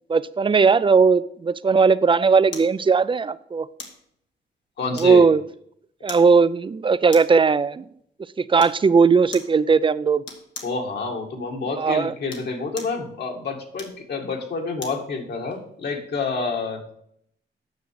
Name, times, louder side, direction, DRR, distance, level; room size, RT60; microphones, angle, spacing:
voice 1, 0.1-3.7 5.0-5.4 6.0-7.9 8.4-10.2 11.8-12.1, right 5 dB, 25° right, 0.5 m, -18 dB
sound 1, 2.5-2.8 3.8-4.0 5.0-5.4 6.1-6.3 7.1-7.4 8.6-8.8 9.3-9.6 10.2-10.8 12.1-13.0 13.7-15.0 15.5-15.6, left 5 dB, 85° left, 1.9 m, -39 dB
voice 2, 4.8-5.2 10.6-16.8, left 4 dB, 65° left, 2.2 m, -28 dB
9.3 x 6.4 x 4.9 m
cardioid pair, 95°, 19 cm